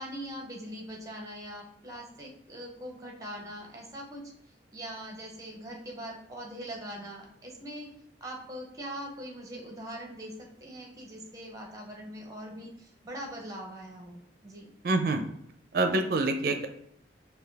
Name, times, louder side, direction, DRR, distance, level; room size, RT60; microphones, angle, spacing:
voice 1, 0.0-4.2 4.7-7.9 8.2-14.7, equal, 20° right, 1 dB, 0.8 m, -42 dB
voice 2, 14.8-15.2 15.7-16.7, right 2 dB, 55° right, 6 dB, 0.5 m, -26 dB
5.5 x 2.3 x 3.4 m, 0.72 s
head